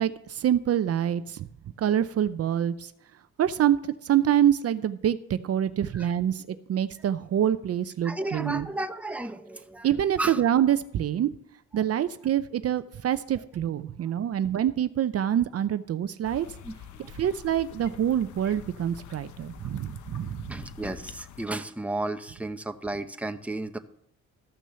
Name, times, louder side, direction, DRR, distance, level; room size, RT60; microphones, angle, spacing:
voice 1, 0.0-1.5 1.8-2.9 3.4-8.6 9.8-11.3 11.7-16.5 17.2-20.5, right 10 dB, 55° right, 13 dB, 0.6 m, -26 dB
voice 2, 8.0-9.9 10.2-10.4 11.7-11.8 14.0-14.1 16.6-17.3 20.5-23.8, right 2 dB, 5° right, 7 dB, 1.0 m, -34 dB
sound 1, 16.2-21.5, left 9 dB, 75° left, 0.9 m, -46 dB
13.5 x 6.1 x 6.9 m, 0.70 s
cardioid pair, 90°, 30 cm